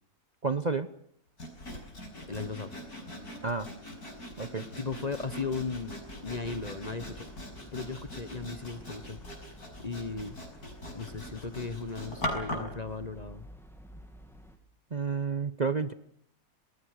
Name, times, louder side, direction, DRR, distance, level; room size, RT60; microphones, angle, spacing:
voice 1, 0.4-0.9 3.4-3.7 4.4-4.6 14.9-15.9, right 4 dB, 35° right, 11 dB, 0.9 m, -30 dB
Sawing, 1.4-12.8, left 1 dB, 80° left, 6.4 m, -41 dB
voice 2, 2.3-2.7 4.8-7.3 7.7-9.2 9.8-10.4 10.9-13.5, left 4 dB, 30° left, 13 dB, 1.1 m, -36 dB
sound 1, 5.3-14.6, equal, ahead, 2.7 m, -51 dB
27.5 x 20.0 x 6.6 m, 0.67 s
omnidirectional pair, 1.6 m